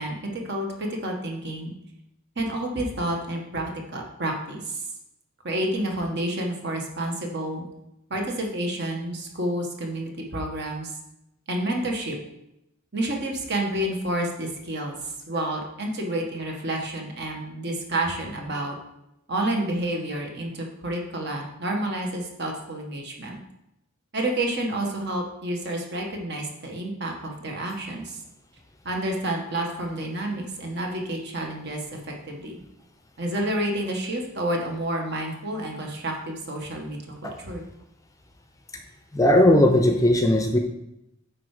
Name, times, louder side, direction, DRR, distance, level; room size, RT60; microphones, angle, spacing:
voice 1, 0.0-1.7 2.3-4.8 5.4-7.6 8.1-10.9 11.5-12.2 12.9-15.0 15.3-18.7 19.3-23.4 24.1-28.2 28.8-32.6 33.2-37.6, right 1 dB, 50° right, 1 dB, 1.5 m, -29 dB
voice 2, 39.1-40.6, left 1 dB, 15° left, 4 dB, 0.6 m, -18 dB
9.0 x 4.6 x 4.9 m, 0.86 s
head